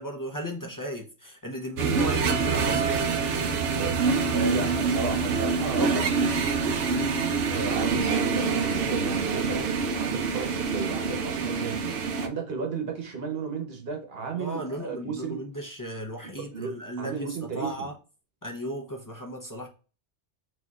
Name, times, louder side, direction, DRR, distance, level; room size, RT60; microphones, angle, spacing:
voice 1, 0.0-3.1 5.7-5.9 14.4-17.9 18.4-19.7, equal, 20° left, 0.6 m, -35 dB
sound 1, 1.8-12.3, right 5 dB, 80° right, 1.0 m, -26 dB
voice 2, 4.3-15.4 16.4-17.9, right 5 dB, 55° right, 1.2 m, -34 dB
6.2 x 2.9 x 2.3 m
omnidirectional pair, 1.2 m